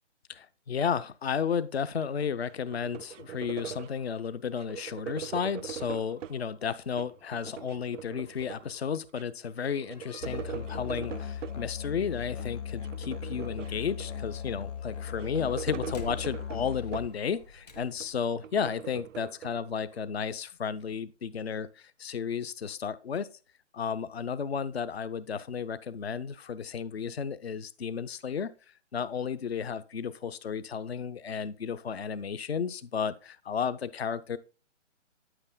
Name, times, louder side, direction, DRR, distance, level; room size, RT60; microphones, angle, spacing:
voice 1, 0.3-23.3 23.7-28.5 28.9-34.4, left 7 dB, 55° left, 0.7 m, -33 dB
sound 1, 2.2-4.1 4.6-6.4 6.9-8.8 9.1-9.2 9.5-11.6 12.2-12.5 12.8-14.4 14.9-17.3 17.7-20.0, right 10 dB, 80° right, 0.5 m, -42 dB
Slam, 9.8-18.2, left 4 dB, 35° left, 1.1 m, -53 dB
Musical instrument, 10.2-17.1, left 7 dB, 75° left, 1.0 m, -38 dB
9.8 x 8.0 x 2.2 m
hypercardioid pair, 175°, 37 cm